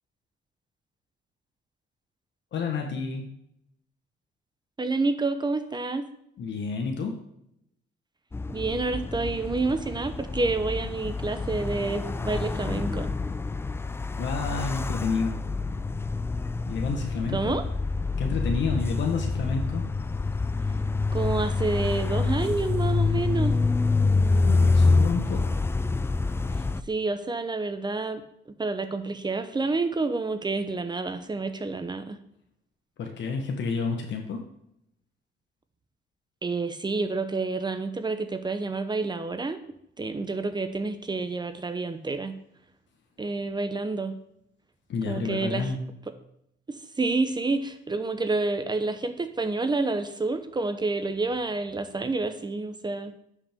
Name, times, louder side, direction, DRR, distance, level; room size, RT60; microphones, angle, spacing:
voice 1, 2.5-3.2 6.4-7.2 14.2-15.4 16.7-17.6 18.2-19.9 24.3-25.6 33.0-34.4 44.9-45.8, left 5 dB, 65° left, 3 dB, 1.2 m, -30 dB
voice 2, 4.8-6.1 8.5-13.1 17.3-17.6 21.1-23.6 26.9-28.2 28.6-32.2 36.4-39.6 40.0-42.3 43.2-44.1 45.1-45.7 46.7-53.1, right 3 dB, 20° right, 9 dB, 0.7 m, -28 dB
sound 1, 8.3-26.8, left 3 dB, 10° left, 0.3 m, -27 dB
10.5 x 5.3 x 3.5 m, 0.76 s
cardioid pair, 90°, 20 cm